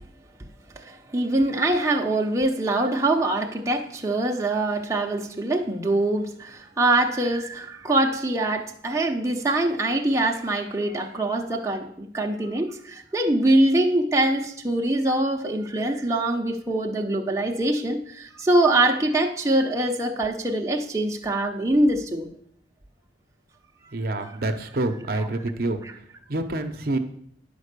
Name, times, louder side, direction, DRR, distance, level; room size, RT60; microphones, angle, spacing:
voice 1, 0.8-22.3 24.2-24.3 25.1-25.3 25.8-25.9, right 1 dB, 15° right, 0 dB, 0.7 m, -24 dB
voice 2, 23.9-25.8 26.3-27.0, right 2 dB, 50° right, 6 dB, 0.8 m, -27 dB
10.5 x 5.3 x 6.6 m, 0.66 s
head